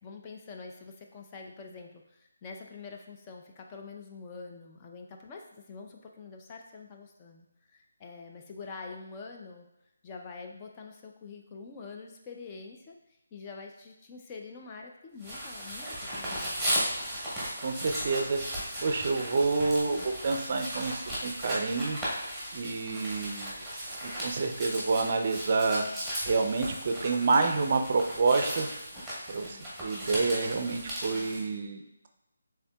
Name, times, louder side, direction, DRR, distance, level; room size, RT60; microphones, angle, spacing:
voice 1, 0.0-9.7 10.0-13.0 13.3-16.9 29.4-29.8 31.1-31.6, left 4 dB, 20° left, 2 dB, 0.4 m, -46 dB
sound 1, 15.2-31.4, equal, ahead, 1.2 m, -36 dB
voice 2, 17.6-22.0 22.5-23.6 24.0-28.7 29.3-31.8, right 4 dB, 45° right, 5 dB, 0.4 m, -28 dB
5.5 x 3.5 x 2.3 m, 0.88 s
figure-of-eight pair, 165°, 0 cm